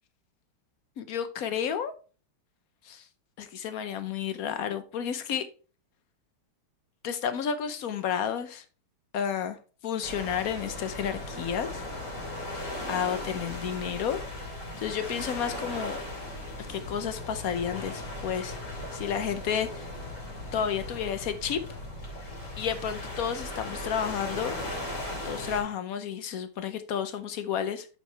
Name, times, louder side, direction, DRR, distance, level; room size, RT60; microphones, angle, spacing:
voice 1, 1.0-1.9 2.8-3.0 3.4-5.5 7.0-8.6 9.1-9.6 9.8-11.8 12.9-14.2 14.8-16.0 16.7-18.6 18.9-19.9 20.5-21.6 22.6-24.6 25.2-27.9, left 8 dB, 70° left, 0.8 m, -31 dB
sound 1, 10.0-25.6, left 1 dB, 35° left, 2.9 m, -37 dB
8.5 x 6.3 x 3.3 m
omnidirectional pair, 2.4 m